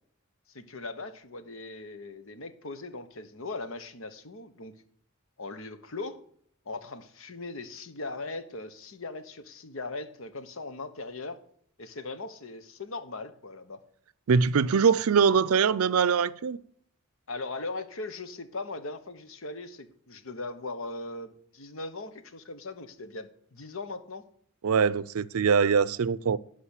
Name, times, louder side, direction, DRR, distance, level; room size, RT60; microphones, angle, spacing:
voice 1, 0.5-4.7 5.4-6.2 6.7-11.4 11.8-13.8 17.3-24.2, left 3 dB, 70° left, 1.1 m, -39 dB
voice 2, 14.3-16.6 24.6-26.4, right 6 dB, 85° right, 0.5 m, -23 dB
11.5 x 5.0 x 8.2 m
head